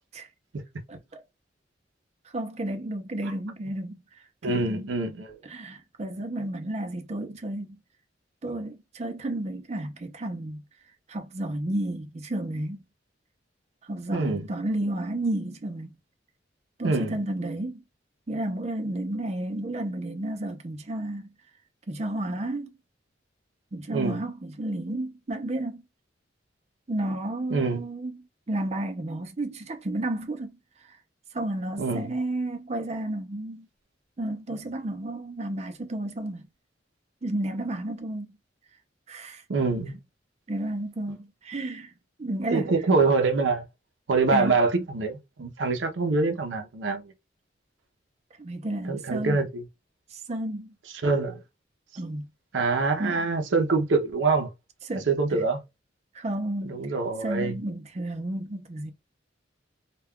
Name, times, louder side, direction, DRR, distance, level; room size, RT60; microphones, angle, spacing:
voice 1, 0.9-1.2 2.3-4.0 4.4-4.9 5.4-7.8 8.4-10.6 11.1-12.9 13.8-15.9 16.8-17.8 18.3-21.3 21.9-22.7 23.7-25.8 26.9-30.6 30.9-31.0 31.3-33.7 34.2-36.5 37.2-38.4 39.1-39.4 39.8-39.9 40.5-41.9 42.2-42.7 44.3-44.6 48.4-49.4 50.1-50.7 52.0-52.3 53.0-53.3 54.9-55.4 56.1-56.8 57.2-58.9, right 1 dB, 35° right, 0.5 m, -32 dB
voice 2, 4.4-5.4 14.1-14.5 16.8-17.2 23.9-24.2 27.5-27.8 31.8-32.2 39.5-39.9 42.5-43.6 44.1-47.1 48.9-49.6 51.0-51.4 52.5-54.5 55.1-55.6 56.6-57.6, right 3 dB, 85° right, 0.6 m, -25 dB
2.2 x 2.2 x 3.5 m
head